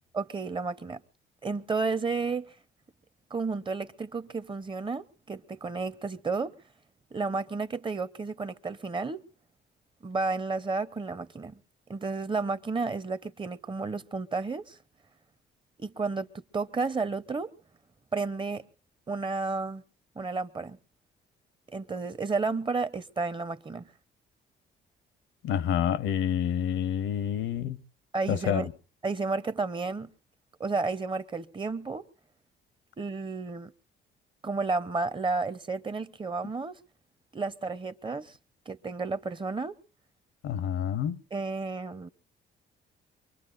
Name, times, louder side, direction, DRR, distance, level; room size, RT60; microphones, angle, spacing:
voice 1, 0.1-1.0 1.4-2.5 3.3-6.6 7.1-9.2 10.0-11.6 11.9-14.8 15.8-17.5 18.1-18.7 19.1-19.8 20.2-20.8 21.7-23.9 28.1-28.7 29.0-30.1 30.6-32.0 33.0-33.7 34.4-36.8 37.3-38.4 38.7-39.8 41.3-42.1, right 4 dB, 25° right, 0.8 m, -32 dB
voice 2, 25.4-27.8 28.3-28.7 40.4-41.2, left 9 dB, 80° left, 0.8 m, -28 dB
24.0 x 23.5 x 2.5 m
cardioid pair, 90°, 20 cm